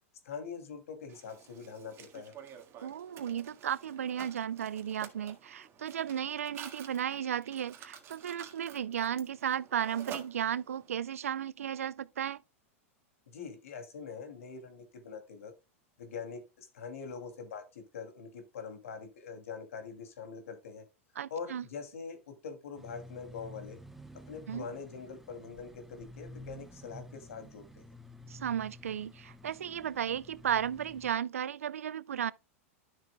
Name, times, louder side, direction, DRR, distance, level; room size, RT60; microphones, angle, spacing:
voice 1, 0.2-2.3 13.3-15.5 16.0-20.9 21.3-23.8 24.1-27.8, left 5 dB, 80° left, 2.5 m, -44 dB
Mechanisms, 1.1-10.9, right 8 dB, 35° right, 1.7 m, -50 dB
voice 2, 2.8-12.4 21.2-21.6 24.5-24.7 28.3-32.3, right 9 dB, 85° right, 0.4 m, -34 dB
sound 1, 22.8-31.1, equal, 5° right, 0.8 m, -51 dB
12.0 x 6.7 x 2.2 m
hypercardioid pair, 105°, 7 cm